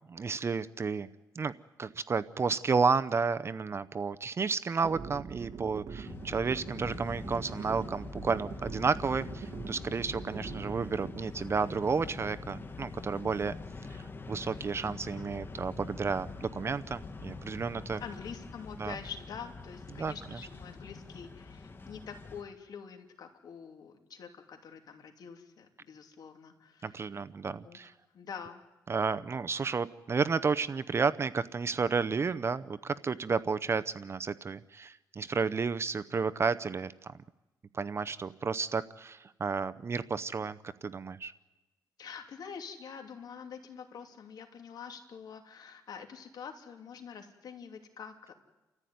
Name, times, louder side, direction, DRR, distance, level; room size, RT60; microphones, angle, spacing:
voice 1, 0.1-1.1 1.3-1.5 1.8-13.5 13.9-18.0 18.8-18.9 19.9-20.1 26.8-27.9 28.9-37.1 37.7-41.3, right 5 dB, 40° right, 13 dB, 0.7 m, -32 dB
sound 1, 4.8-11.1, right 5 dB, 55° right, 1.6 m, -43 dB
sound 2, 6.0-22.4, left 3 dB, 30° left, 1.5 m, -44 dB
voice 2, 18.0-27.1 27.6-27.8 28.1-28.6 42.0-48.3, left 6 dB, 70° left, 4 dB, 3.0 m, -46 dB
29.5 x 14.5 x 9.5 m, 1.1 s
cardioid pair, 95°, 7 cm